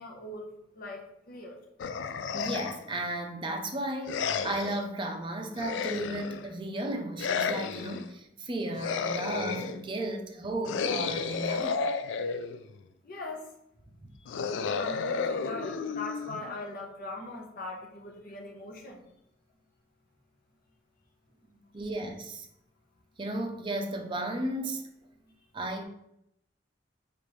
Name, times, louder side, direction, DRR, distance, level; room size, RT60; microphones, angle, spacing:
voice 1, 0.0-1.6 13.0-13.5 14.2-19.0 25.2-25.3, left 2 dB, 55° left, 0.8 m, -41 dB
sound 1, 1.8-2.9 4.1-4.8 5.6-6.5 7.2-8.1 8.7-9.8 10.6-12.7 14.3-16.7, left 5 dB, 80° left, 0.3 m, -32 dB
voice 2, 2.3-11.8 14.0-14.2 21.7-22.5 23.2-24.9 25.5-25.8, right 1 dB, 25° right, 0.5 m, -34 dB
5.1 x 2.5 x 3.2 m
head